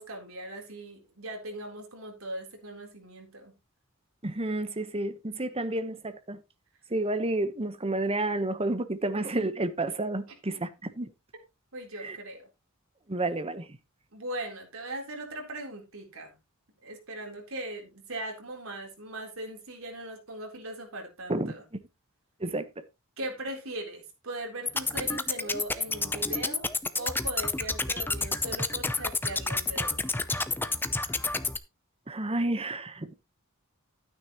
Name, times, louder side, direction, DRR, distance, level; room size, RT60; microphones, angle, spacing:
voice 1, 0.0-3.5 11.7-12.4 14.1-16.4 16.8-21.6 23.2-26.7 27.0-30.0, right 1 dB, 70° right, 4.0 m, -39 dB
voice 2, 4.2-6.4 6.9-11.1 12.0-12.2 13.1-13.7 21.3-21.5 22.4-22.7 32.1-33.1, right 2 dB, 30° right, 1.2 m, -30 dB
sound 1, 24.7-31.6, left 3 dB, 10° left, 0.7 m, -30 dB
12.0 x 9.7 x 3.1 m
head